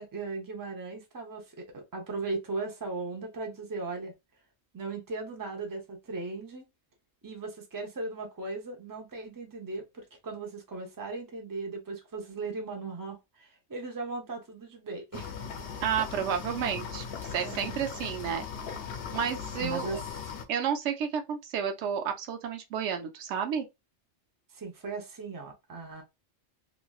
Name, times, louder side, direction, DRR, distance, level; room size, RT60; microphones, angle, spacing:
voice 1, 0.0-4.1 4.7-6.7 7.2-15.4 17.4-17.7 19.6-20.0 24.5-26.0, right 3 dB, 20° right, 0.6 m, -37 dB
sound 1, 15.1-20.4, left 6 dB, 65° left, 0.7 m, -39 dB
voice 2, 15.8-17.0 17.3-18.5 19.1-20.0 20.5-23.7, right 8 dB, 85° right, 0.9 m, -31 dB
3.1 x 2.5 x 2.3 m
omnidirectional pair, 1.2 m